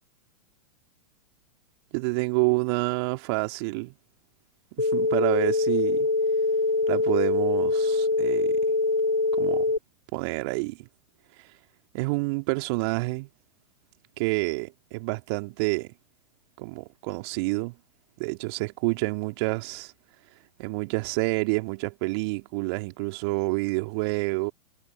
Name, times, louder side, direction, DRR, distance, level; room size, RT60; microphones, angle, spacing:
voice 1, 1.9-3.9 4.8-6.1 6.9-8.6 9.3-9.7 10.1-10.9 11.9-13.3 14.2-15.9 16.6-17.7 18.2-19.9 20.6-24.5, right 28 dB, 50° right, 2.8 m, -28 dB
sound 1, 4.8-9.8, left 3 dB, 90° left, 2.6 m, -24 dB
figure-of-eight pair, 100°, 17 cm